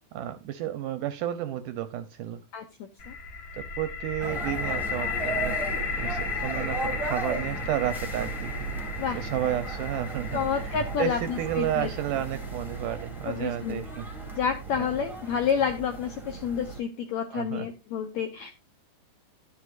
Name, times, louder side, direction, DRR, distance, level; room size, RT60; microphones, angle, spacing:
voice 1, 0.1-2.4 3.5-5.6 6.0-8.5 9.1-14.1 14.8-14.9 17.3-17.7, right 11 dB, 80° right, 11 dB, 2.0 m, -32 dB
voice 2, 2.5-3.1 9.0-9.2 10.3-11.9 13.2-13.8 14.3-18.5, left 7 dB, 80° left, 6 dB, 1.6 m, -29 dB
sound 1, 3.0-14.8, left 4 dB, 50° left, 2.5 m, -35 dB
sound 2, 4.2-16.8, right 4 dB, ahead, 0.9 m, -36 dB
12.0 x 9.7 x 2.5 m, 0.23 s
omnidirectional pair, 4.3 m